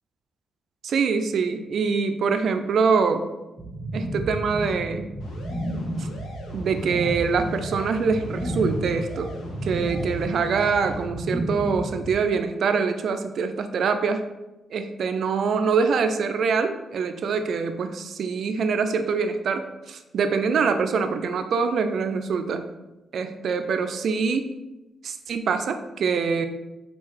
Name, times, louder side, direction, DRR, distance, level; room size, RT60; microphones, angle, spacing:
voice 1, 0.8-3.3 3.9-5.1 6.0-6.1 6.5-9.3 9.6-14.2 14.7-22.7 23.1-24.5 25.0-26.5, right 5 dB, 65° right, 8 dB, 0.3 m, -24 dB
sound 1, 3.6-12.1, right 1 dB, 25° right, 0.7 m, -32 dB
sound 2, 5.2-11.0, left 1 dB, 80° left, 0.6 m, -42 dB
3.6 x 2.3 x 3.2 m, 1.0 s
supercardioid pair, 60°, 0 cm